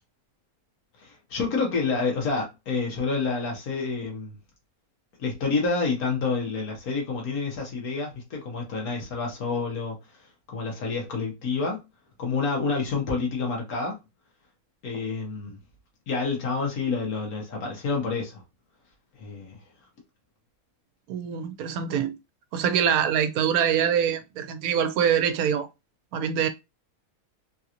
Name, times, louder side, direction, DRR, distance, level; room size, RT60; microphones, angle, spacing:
voice 1, 1.0-4.3 5.2-10.0 10.5-11.8 12.2-13.9 14.8-15.6 16.1-18.4 19.2-19.6, left 4 dB, 80° left, 1.6 m, -28 dB
voice 2, 21.1-22.1 22.5-25.7 26.1-26.5, right 8 dB, 80° right, 1.0 m, -24 dB
3.8 x 2.5 x 2.8 m
omnidirectional pair, 1.5 m